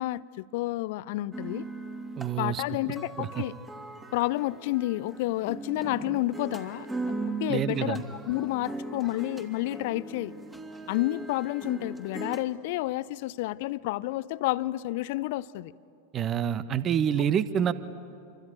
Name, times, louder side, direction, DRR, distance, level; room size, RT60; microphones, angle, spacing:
voice 1, 0.0-1.7 2.4-3.5 4.1-6.9 7.4-10.3 10.9-15.7, left 17 dB, 50° left, 0.6 m, -30 dB
sound 1, 1.3-12.4, right 3 dB, 10° right, 2.6 m, -39 dB
voice 2, 2.2-2.6 3.2-3.4 7.5-8.0 16.1-17.7, right 9 dB, 30° right, 1.2 m, -27 dB
28.0 x 24.0 x 9.0 m
figure-of-eight pair, 90°, 0 cm